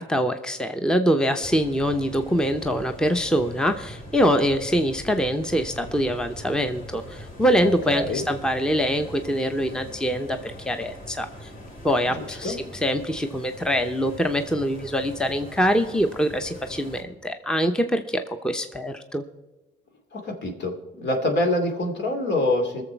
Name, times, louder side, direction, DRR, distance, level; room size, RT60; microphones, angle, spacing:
voice 1, 0.0-11.5 11.8-12.6 12.8-19.2, equal, 5° left, 7 dB, 0.8 m, -24 dB
sound 1, 1.4-17.0, equal, 40° left, 3.1 m, -42 dB
voice 2, 7.6-8.2 12.1-12.6 20.1-22.8, left 1 dB, 60° left, 3 dB, 2.6 m, -26 dB
21.0 x 7.1 x 4.5 m, 1.1 s
cardioid pair, 90°, 20 cm